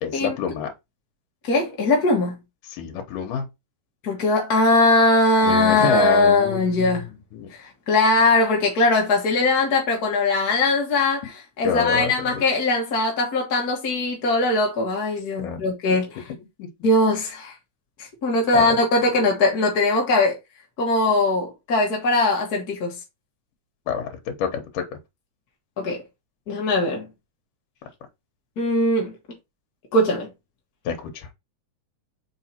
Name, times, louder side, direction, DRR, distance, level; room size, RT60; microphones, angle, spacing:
voice 1, 0.0-0.7 2.7-3.5 5.4-7.5 11.6-12.4 15.4-16.0 16.4-16.7 18.5-18.8 23.9-24.8 30.9-31.3, left 7 dB, 75° left, 2.6 m, -28 dB
voice 2, 1.4-2.4 4.0-7.1 7.5-11.3 11.6-16.1 16.8-17.5 18.2-20.4 20.8-22.9 25.8-26.0 26.5-27.1 28.6-29.1 29.9-30.3, left 2 dB, 45° left, 1.3 m, -20 dB
5.5 x 4.1 x 4.3 m
omnidirectional pair, 3.8 m